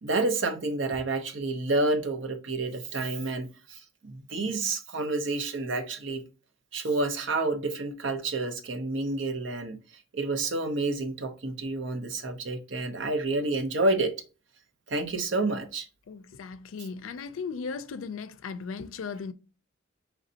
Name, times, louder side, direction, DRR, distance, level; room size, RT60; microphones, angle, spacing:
voice 1, 0.0-6.2 6.7-9.8 10.1-14.1 14.9-15.9, right 2 dB, 65° right, 0.7 m, -29 dB
voice 2, 16.1-19.3, left 5 dB, 90° left, 0.4 m, -37 dB
5.0 x 3.2 x 2.7 m
head